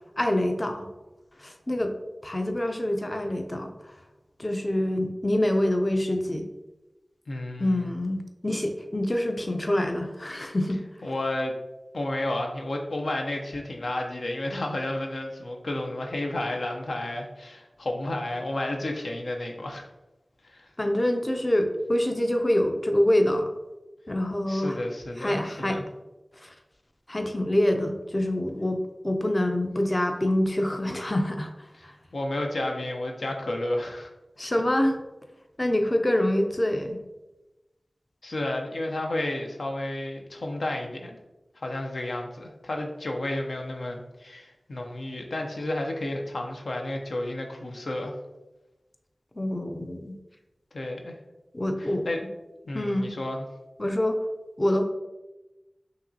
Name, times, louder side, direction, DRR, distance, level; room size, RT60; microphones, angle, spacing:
voice 1, 0.2-0.9 1.4-1.9 2.2-3.7 4.4-6.5 7.6-10.8 20.8-23.5 24.1-24.8 25.2-25.8 26.4-26.5 27.1-31.9 34.4-35.0 35.6-37.0 49.4-50.2 51.5-52.1 52.7-53.1 53.8-54.2 54.6-54.8, left 1 dB, 30° left, 5 dB, 0.4 m, -26 dB
voice 2, 7.3-7.9 11.0-11.5 11.9-19.9 20.5-20.7 24.5-25.8 32.1-34.1 38.2-41.2 41.6-48.2 50.7-51.2 51.8-52.2 52.7-53.4, left 1 dB, 85° left, 2 dB, 0.5 m, -31 dB
5.4 x 2.9 x 2.7 m, 1.0 s
wide cardioid pair, 50°, 0 cm